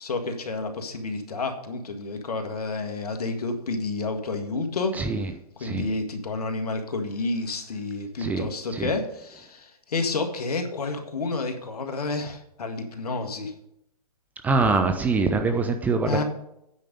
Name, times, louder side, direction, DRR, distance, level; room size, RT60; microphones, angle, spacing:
voice 1, 0.0-5.0 5.6-13.5 16.1-16.2, left 3 dB, 75° left, 5 dB, 1.7 m, -30 dB
voice 2, 14.4-16.2, right 4 dB, 10° right, 6 dB, 0.4 m, -24 dB
9.3 x 5.2 x 6.6 m, 0.79 s
hypercardioid pair, 140°, 20 cm